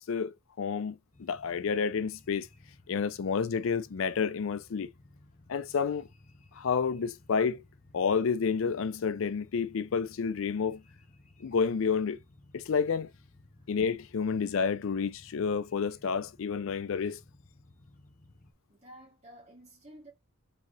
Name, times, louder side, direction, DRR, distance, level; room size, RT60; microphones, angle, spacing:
voice 1, 0.0-2.5 2.9-4.9 5.5-6.1 6.5-7.6 7.9-10.8 11.4-12.2 12.5-13.1 13.7-17.2, left 6 dB, 70° left, 0.4 m, -30 dB
sound 1, 1.1-18.5, left 2 dB, 35° left, 0.7 m, -58 dB
voice 2, 18.7-20.1, right 1 dB, 30° right, 2.2 m, -52 dB
3.9 x 3.7 x 2.9 m
head